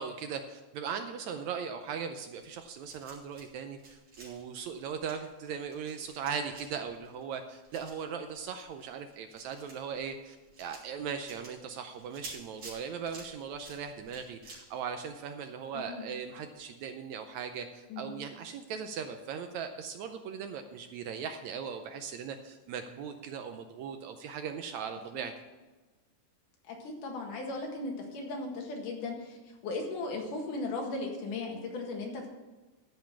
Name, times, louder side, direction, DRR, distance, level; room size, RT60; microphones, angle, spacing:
voice 1, 0.0-25.3, right 6 dB, 75° right, 7 dB, 1.8 m, -39 dB
sound 1, 2.4-3.5 3.7-15.8 16.2-16.3 16.5-16.6, right 2 dB, 50° right, 4.1 m, -52 dB
voice 2, 15.7-16.1 17.9-18.1 25.1-25.2 26.7-29.4 29.6-32.3, left 3 dB, 75° left, 0 dB, 3.4 m, -37 dB
13.5 x 5.5 x 7.2 m, 1.2 s
omnidirectional pair, 3.7 m